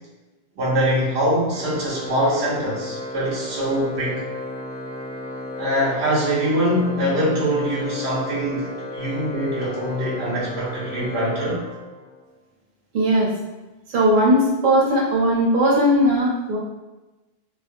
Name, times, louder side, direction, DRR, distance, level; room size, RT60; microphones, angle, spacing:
voice 1, 0.6-4.2 5.6-11.6, equal, 90° right, -6 dB, 1.0 m, -23 dB
Organ, 1.5-12.3, left 2 dB, 30° left, 0.5 m, -33 dB
voice 2, 12.9-13.3 13.9-16.6, equal, 55° right, -5 dB, 0.8 m, -18 dB
2.4 x 2.1 x 2.5 m, 1.1 s
omnidirectional pair, 1.1 m